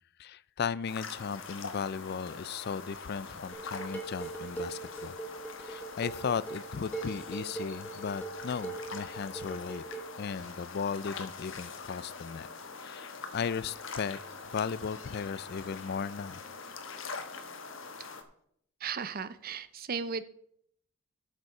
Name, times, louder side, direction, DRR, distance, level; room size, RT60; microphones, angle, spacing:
voice 1, 0.2-5.2 5.6-9.8 10.2-12.5 12.8-14.2 14.5-16.4, left 6 dB, 50° left, 0.4 m, -36 dB
sound 1, 0.9-18.2, left 4 dB, 70° left, 1.2 m, -44 dB
Dishes pots and pans, 3.5-10.1, right 3 dB, 10° left, 1.4 m, -41 dB
voice 2, 18.8-20.2, right 6 dB, 45° right, 0.6 m, -36 dB
12.5 x 6.8 x 4.8 m
head